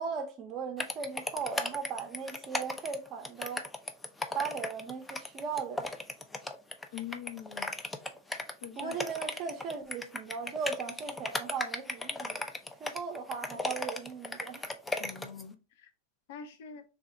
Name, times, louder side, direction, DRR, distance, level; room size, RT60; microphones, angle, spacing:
voice 1, 0.0-3.7 4.3-6.0 8.7-12.4 12.8-14.7, right 5 dB, 30° right, 0.6 m, -38 dB
sound 1, 0.8-15.4, left 2 dB, 10° left, 0.3 m, -36 dB
voice 2, 6.9-7.7 8.6-9.0 15.0-15.6 16.3-16.8, left 8 dB, 60° left, 0.6 m, -43 dB
3.4 x 2.0 x 3.7 m
supercardioid pair, 150°, 0 cm